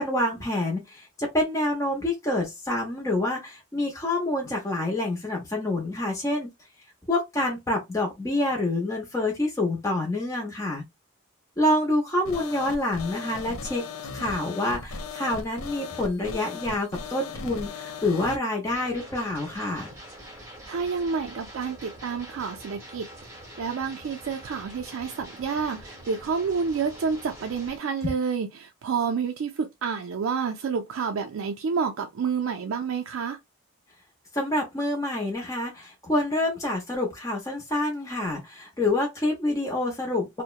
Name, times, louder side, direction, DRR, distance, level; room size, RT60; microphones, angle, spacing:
voice 1, 0.0-6.5 7.1-10.8 11.6-13.8 14.1-19.9 34.3-40.4, left 1 dB, 15° left, 0.6 m, -27 dB
sound 1, 12.2-18.4, left 5 dB, 85° left, 0.5 m, -37 dB
sound 2, 18.6-27.8, right 1 dB, 10° right, 0.8 m, -45 dB
voice 2, 20.7-33.4, right 5 dB, 75° right, 0.4 m, -29 dB
2.8 x 2.1 x 2.2 m
head